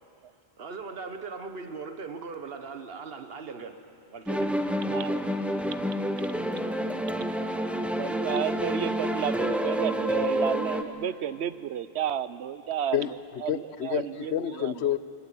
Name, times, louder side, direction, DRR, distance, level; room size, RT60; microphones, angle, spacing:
voice 1, 0.6-3.8 4.1-4.6, right 4 dB, 65° right, 7 dB, 1.5 m, -39 dB
sound 1, 4.3-10.8, equal, ahead, 0.8 m, -28 dB
voice 2, 4.9-5.2 8.0-13.0 13.9-14.0, right 9 dB, 85° right, 14 dB, 1.0 m, -31 dB
voice 3, 12.9-15.0, left 10 dB, 85° left, 14 dB, 1.0 m, -29 dB
22.5 x 20.0 x 8.9 m, 2.6 s
omnidirectional pair, 1.1 m